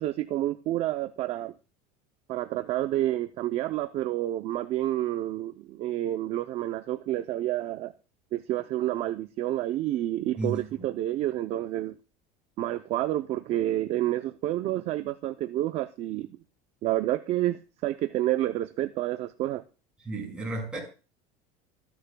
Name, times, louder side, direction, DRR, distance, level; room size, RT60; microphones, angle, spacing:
voice 1, 0.0-1.5 2.3-7.9 8.3-12.0 12.6-16.3 16.8-19.6, right 14 dB, 35° right, 0.5 m, -29 dB
voice 2, 20.1-20.8, right 2 dB, 5° right, 5.3 m, -32 dB
25.5 x 10.5 x 2.2 m
cardioid pair, 165°, 17 cm